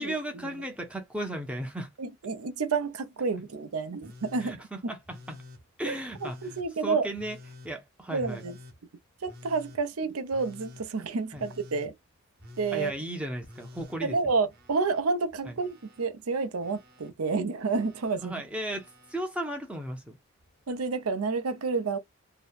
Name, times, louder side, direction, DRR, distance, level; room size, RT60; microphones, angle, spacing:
voice 1, 0.0-1.9 4.4-5.4 5.8-6.6 6.8-7.4 7.6-8.4 11.3-11.4 12.7-14.2 15.5-15.6 18.2-20.2, right 1 dB, 5° right, 0.4 m, -35 dB
voice 2, 2.0-4.6 4.8-4.9 5.9-7.1 8.1-8.6 9.2-11.9 12.6-12.9 14.0-18.3 20.7-22.0, right 4 dB, 90° right, 0.6 m, -29 dB
Telephone, 4.0-4.6 5.1-5.6 6.1-6.7 7.2-7.7 8.2-8.8 9.3-9.8 10.3-10.9 11.3-11.9 12.4-13.0 13.4-15.0 15.3-16.1 16.6-17.1 17.7-18.2 18.7-19.2 20.4-20.5, left 2 dB, 45° right, 0.8 m, -49 dB
2.7 x 2.1 x 2.3 m
head